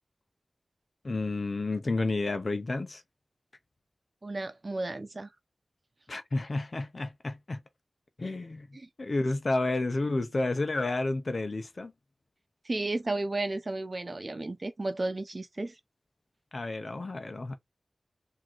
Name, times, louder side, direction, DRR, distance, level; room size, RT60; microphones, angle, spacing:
voice 1, 1.0-3.0 6.1-7.6 8.2-8.7 9.0-11.9 16.5-17.6, left 2 dB, 60° left, 0.9 m, -31 dB
voice 2, 4.2-5.3 12.6-15.7, right 2 dB, 45° right, 0.9 m, -33 dB
3.8 x 2.9 x 4.6 m
wide cardioid pair, 50°, 0 cm